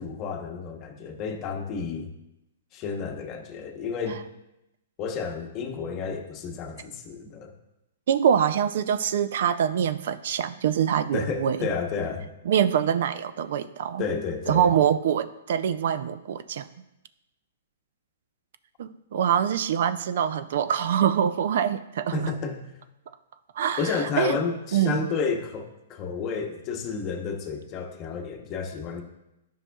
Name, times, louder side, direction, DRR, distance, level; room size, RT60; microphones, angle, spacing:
voice 1, 0.0-2.1 2.7-4.2 5.0-7.5 11.1-12.3 14.0-14.7 22.1-22.7 23.8-29.0, left 5 dB, 30° left, 3 dB, 0.9 m, -31 dB
voice 2, 8.1-11.7 12.5-14.0 14.5-16.7 18.8-22.3 23.6-24.4 24.7-25.0, right 8 dB, 60° right, 13 dB, 0.3 m, -24 dB
9.9 x 5.5 x 2.3 m, 0.89 s
hypercardioid pair, 150°, 0 cm